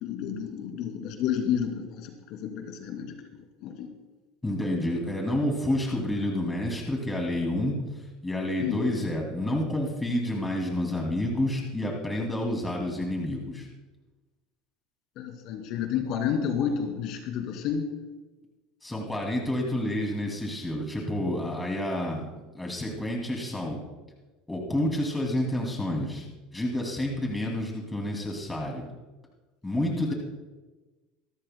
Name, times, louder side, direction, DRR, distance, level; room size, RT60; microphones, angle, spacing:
voice 1, 0.0-3.2 3.6-3.9 8.6-8.8 15.2-17.9 30.1-30.2, left 8 dB, 55° left, 3 dB, 2.4 m, -30 dB
voice 2, 4.4-7.8 8.2-13.7 18.8-22.2 22.5-23.8 24.5-26.3 26.5-28.9 29.6-30.1, left 1 dB, 10° left, 0 dB, 2.5 m, -29 dB
25.0 x 13.5 x 2.2 m, 1.2 s
supercardioid pair, 140°, 0 cm